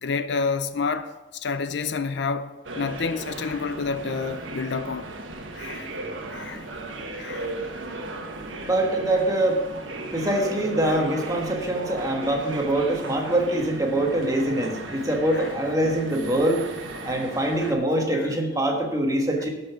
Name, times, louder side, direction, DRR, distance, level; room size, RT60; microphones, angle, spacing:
voice 1, 0.0-2.5 2.8-5.1 5.5-5.9 6.3-6.6 7.2-7.5 10.9-11.0 15.3-15.5 17.6-17.7 18.1-18.3, left 5 dB, 60° left, 0.5 m, -29 dB
sound 1, 2.6-17.7, right 2 dB, 75° right, 1.4 m, -36 dB
voice 2, 6.4-16.7 17.0-19.5, right 1 dB, 15° right, 1.4 m, -25 dB
11.5 x 5.5 x 5.7 m
head